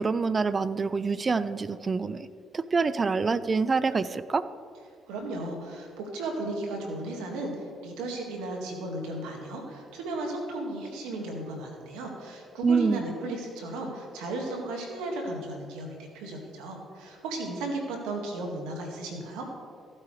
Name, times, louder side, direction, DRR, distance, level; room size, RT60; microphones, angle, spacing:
voice 1, 0.0-2.3 2.5-4.4 12.6-13.0, right 4 dB, 35° right, 15 dB, 0.5 m, -26 dB
voice 2, 5.1-19.5, right 2 dB, 90° right, 1 dB, 1.9 m, -35 dB
15.0 x 8.5 x 3.3 m, 2.3 s
supercardioid pair, 65°, 0 cm